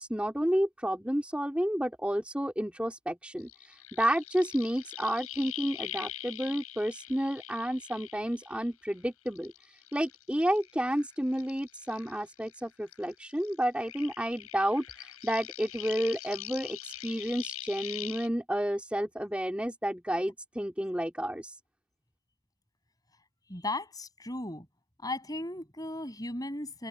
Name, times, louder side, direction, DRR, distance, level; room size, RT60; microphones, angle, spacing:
voice 1, 0.0-9.5 9.9-21.6, equal, 5° right, 3.1 m, -31 dB
sound 1, 3.4-8.9 9.3-12.6 12.9-18.3, left 13 dB, 80° left, 5.2 m, -43 dB
voice 2, 23.5-24.7 25.0-26.9, left 2 dB, 15° left, 7.3 m, -36 dB
open air
head